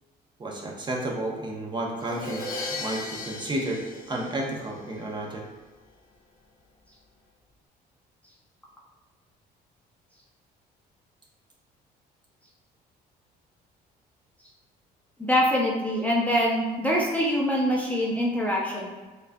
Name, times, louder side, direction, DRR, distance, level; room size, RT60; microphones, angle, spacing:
voice 1, 0.4-2.5 2.8-3.8 4.1-5.4, right 1 dB, 25° right, -1 dB, 0.8 m, -31 dB
Crash cymbal, 2.0-4.9, left 3 dB, 60° left, 1.0 m, -36 dB
voice 2, 15.2-19.0, equal, 10° left, -3 dB, 0.6 m, -24 dB
6.1 x 2.4 x 2.2 m, 1.3 s
cardioid pair, 110°, 17 cm